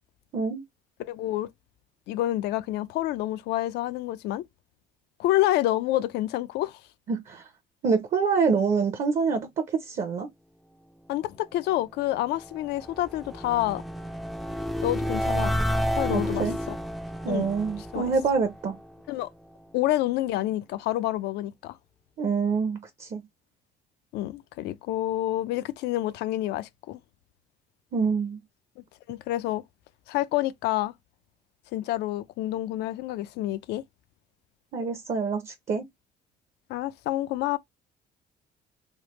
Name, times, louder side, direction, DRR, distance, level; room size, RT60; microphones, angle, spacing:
voice 1, 1.0-1.5 2.1-4.4 5.2-6.8 11.1-13.8 14.8-15.6 15.9-16.8 17.3-17.5 17.9-18.1 19.1-19.3 19.7-21.8 24.1-27.0 29.1-29.6 30.1-30.9 31.7-33.8 36.7-37.6, left 15 dB, 80° left, 0.4 m, -28 dB
voice 2, 7.1-7.5 7.8-10.3 16.1-16.5 17.2-18.7 22.2-23.2 27.9-28.4 34.7-35.8, right 5 dB, 45° right, 0.6 m, -26 dB
sound 1, 12.1-19.2, equal, ahead, 0.3 m, -31 dB
3.3 x 2.1 x 2.9 m
cardioid pair, 110°, 17 cm